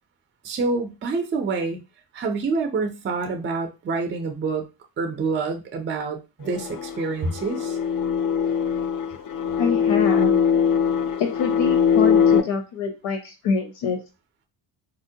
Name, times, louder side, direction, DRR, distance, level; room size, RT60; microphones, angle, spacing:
voice 1, 0.4-1.8 2.1-4.7 5.0-7.8, right 4 dB, 25° right, 5 dB, 0.4 m, -27 dB
sound 1, 6.5-12.4, left 7 dB, 45° left, 0.4 m, -21 dB
voice 2, 9.6-10.4 11.2-14.0, left 5 dB, 75° left, 3 dB, 0.8 m, -25 dB
4.3 x 2.1 x 2.7 m, 0.29 s
wide cardioid pair, 155°, 49 cm